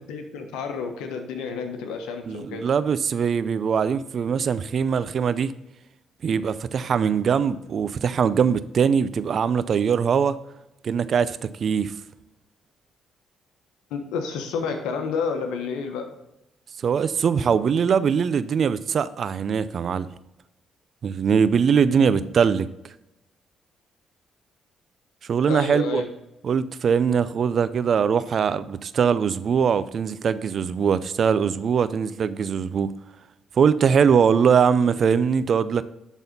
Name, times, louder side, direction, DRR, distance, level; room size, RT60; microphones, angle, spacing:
voice 1, 0.0-2.7 13.9-16.1 21.9-22.2 25.5-26.1, left 5 dB, 90° left, 5 dB, 1.2 m, -30 dB
voice 2, 2.3-5.5 6.2-10.4 10.8-11.9 16.8-20.1 21.0-22.7 25.3-26.0 26.4-32.9 33.6-35.8, right 7 dB, 55° right, 15 dB, 0.5 m, -22 dB
10.5 x 4.1 x 5.4 m, 0.91 s
supercardioid pair, 70°, 0 cm